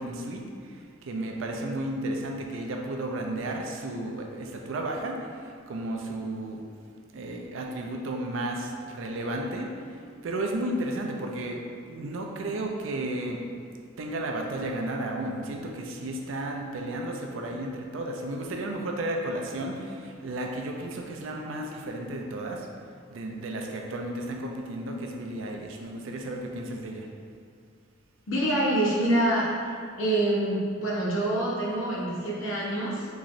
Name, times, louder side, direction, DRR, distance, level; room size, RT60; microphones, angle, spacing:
voice 1, 0.0-6.6 7.1-13.4 14.0-22.7 23.1-27.1, right 1 dB, 80° right, 1 dB, 0.4 m, -33 dB
voice 2, 28.3-29.5 30.0-33.1, right 1 dB, 75° left, -5 dB, 0.8 m, -26 dB
3.7 x 3.1 x 2.5 m, 2.3 s
head